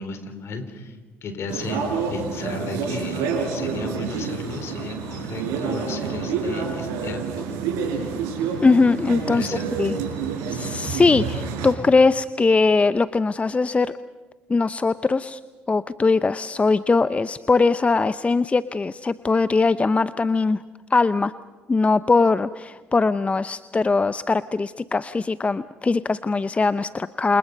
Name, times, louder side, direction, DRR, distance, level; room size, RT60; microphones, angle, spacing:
voice 1, 0.0-7.5 9.3-9.7, left 3 dB, 55° left, 8 dB, 4.1 m, -34 dB
sound 1, 1.5-11.7, right 5 dB, 75° right, 5.4 m, -28 dB
voice 2, 8.6-9.5 9.8-10.0 10.5-14.0 14.5-15.4 15.7-20.6 20.9-21.3 21.7-27.4, left 3 dB, 25° left, 15 dB, 0.7 m, -21 dB
29.0 x 28.0 x 5.4 m, 1.3 s
hypercardioid pair, 55°, 5 cm